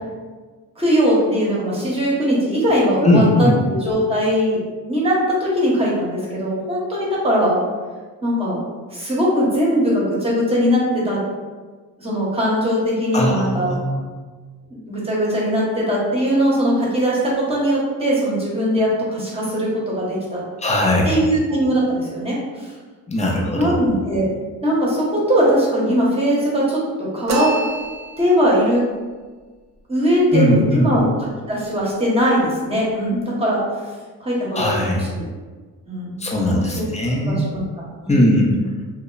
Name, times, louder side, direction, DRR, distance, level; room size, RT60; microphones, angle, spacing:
voice 1, 0.8-4.6 4.9-7.6 8.2-8.6 8.9-11.2 12.0-13.7 14.7-20.4 21.0-22.7 23.5-24.3 24.6-27.6 28.2-28.8 29.9-31.1 31.5-33.6 34.2-35.3 35.9-36.9 37.2-37.6 38.0-38.3, equal, 15° right, -6 dB, 0.9 m, -20 dB
voice 2, 3.0-3.6 13.1-14.0 20.6-21.2 23.1-23.8 30.3-30.9 34.5-35.0 36.2-37.6 38.1-38.5, left 1 dB, 20° left, -2 dB, 0.5 m, -19 dB
sound 1, 27.3-28.5, right 2 dB, 45° right, 0.4 m, -27 dB
2.7 x 2.0 x 2.3 m, 1.4 s
cardioid pair, 75°, 38 cm